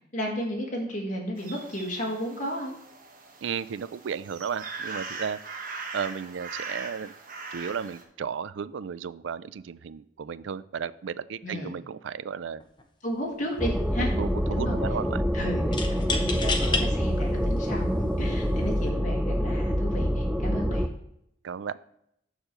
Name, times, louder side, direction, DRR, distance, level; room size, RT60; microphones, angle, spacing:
voice 1, 0.1-2.7 11.4-11.8 13.0-14.1 14.5-14.8 15.3-20.9, equal, 40° left, -2 dB, 1.6 m, -33 dB
sound 1, 1.4-8.0, right 4 dB, 45° right, 1.1 m, -40 dB
voice 2, 3.4-5.4 5.9-7.1 7.5-12.6 14.2-15.2 18.5-18.6 21.4-21.8, right 7 dB, 75° right, 16 dB, 0.4 m, -34 dB
sound 2, 12.6-12.8 13.1-13.8 15.7-16.9 17.6-17.7 18.6-18.9, left 4 dB, 25° left, 0.8 m, -30 dB
sound 3, 13.6-20.9, equal, ahead, 0.3 m, -26 dB
6.8 x 4.4 x 6.6 m, 0.76 s
head